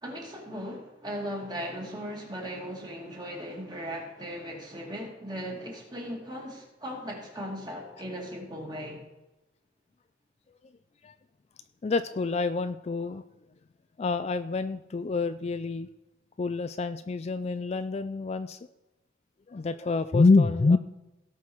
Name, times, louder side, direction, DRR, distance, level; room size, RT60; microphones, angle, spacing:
voice 1, 0.0-9.0, equal, 20° right, 2.3 m, -38 dB
voice 2, 11.8-13.2 14.0-15.9 16.4-18.6 19.5-20.8, left 3 dB, 35° left, 0.3 m, -26 dB
17.0 x 5.8 x 4.6 m
head